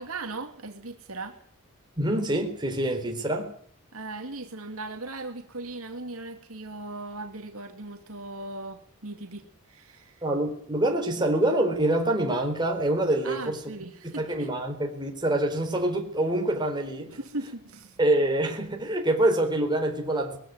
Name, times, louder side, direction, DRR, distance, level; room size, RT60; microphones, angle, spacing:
voice 1, 0.0-1.4 3.9-10.2 13.2-14.5 17.1-18.0, right 2 dB, 70° right, 2.7 m, -38 dB
voice 2, 2.0-3.5 10.2-13.6 14.2-17.1 18.0-20.4, right 1 dB, 20° right, 4.0 m, -25 dB
21.0 x 15.0 x 9.5 m
head